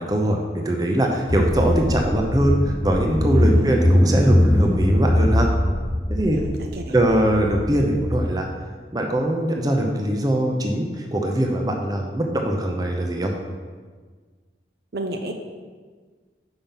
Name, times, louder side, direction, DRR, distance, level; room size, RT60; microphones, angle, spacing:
voice 1, 0.0-5.5 6.1-6.4 6.9-8.5 8.9-13.3, right 1 dB, 20° right, 1 dB, 0.7 m, -22 dB
Car / Engine, 1.3-8.3, left 1 dB, 15° left, 0.3 m, -21 dB
voice 2, 6.3-6.9 14.9-15.3, right 1 dB, 65° right, 4 dB, 0.6 m, -31 dB
5.9 x 5.7 x 5.3 m, 1.5 s
head